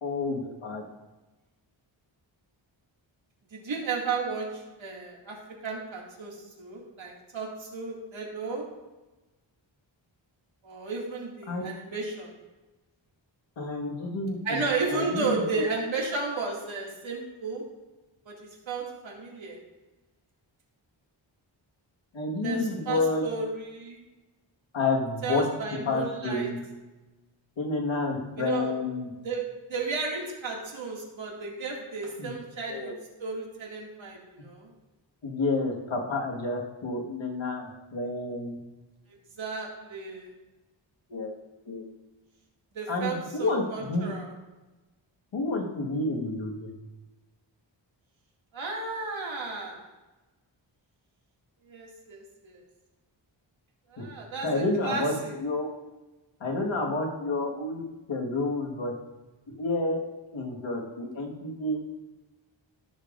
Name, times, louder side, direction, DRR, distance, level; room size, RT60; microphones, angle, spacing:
voice 1, 0.0-0.8 11.5-11.6 13.6-15.6 22.1-23.2 24.7-25.5 25.7-26.6 27.6-29.1 32.2-32.4 32.7-32.9 35.2-38.6 41.1-41.3 41.7-41.8 42.9-44.1 45.3-46.7 54.0-54.1 54.4-55.7 56.4-57.8 58.1-58.9 59.6-60.0 60.3-61.8, left 2 dB, 75° left, 0 dB, 1.7 m, -30 dB
voice 2, 3.5-5.4 5.6-8.6 10.6-12.3 14.4-17.6 18.3-18.4 18.7-19.6 22.4-24.0 25.2-26.5 28.4-28.7 29.2-32.9 33.2-34.7 39.4-40.3 42.7-44.3 48.5-49.8 51.7-52.6 53.9-55.3, right 4 dB, 85° right, -2 dB, 2.3 m, -33 dB
14.5 x 7.1 x 2.6 m, 1.1 s
wide cardioid pair, 145°, 46 cm